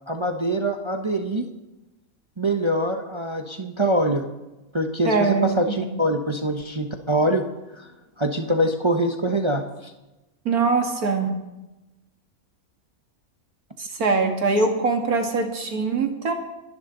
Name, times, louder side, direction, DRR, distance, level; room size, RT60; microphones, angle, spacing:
voice 1, 0.1-1.4 2.4-4.2 4.7-7.4 7.8-7.9 8.2-9.9, right 1 dB, 25° right, 4 dB, 0.9 m, -24 dB
voice 2, 5.0-5.5 5.8-5.9 10.5-11.3 13.8-16.3, right 4 dB, 85° right, 3 dB, 2.4 m, -22 dB
29.0 x 11.0 x 3.9 m, 1.0 s
omnidirectional pair, 1.5 m